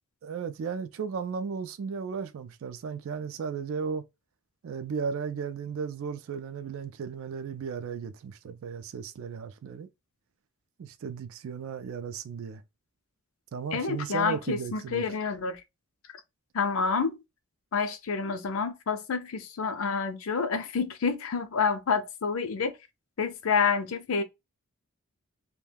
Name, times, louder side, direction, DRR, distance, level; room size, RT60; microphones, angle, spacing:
voice 1, 0.2-4.0 4.6-9.9 10.8-12.6 13.5-15.0, right 6 dB, 65° right, 0.3 m, -35 dB
voice 2, 13.7-15.6 16.5-17.2 17.7-22.8 23.2-24.2, left 5 dB, 65° left, 0.5 m, -28 dB
2.2 x 2.1 x 3.2 m
head